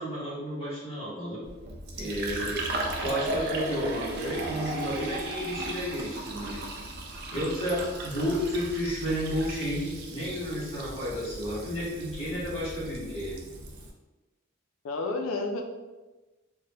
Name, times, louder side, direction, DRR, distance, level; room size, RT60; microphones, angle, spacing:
voice 1, 0.0-1.4 2.0-2.6 3.0-6.7 7.3-13.4, equal, 30° left, -9 dB, 1.2 m, -32 dB
Fill (with liquid), 1.4-13.9, right 1 dB, 50° right, 0.4 m, -36 dB
voice 2, 14.8-15.6, left 3 dB, 75° left, 3 dB, 0.4 m, -31 dB
2.8 x 2.2 x 3.2 m, 1.2 s
head